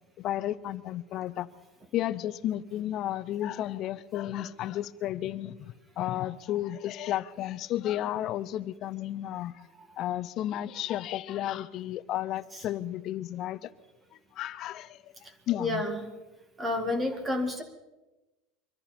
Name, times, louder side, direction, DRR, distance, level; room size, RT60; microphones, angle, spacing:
voice 1, 0.2-1.5 1.9-9.6 10.0-13.7 14.3-15.1 15.5-15.8, left 13 dB, 35° left, 12 dB, 0.6 m, -33 dB
voice 2, 15.6-16.0 16.6-17.6, left 2 dB, 10° right, 6 dB, 1.8 m, -29 dB
24.5 x 14.0 x 4.3 m, 1.1 s
cardioid pair, 170°, 0 cm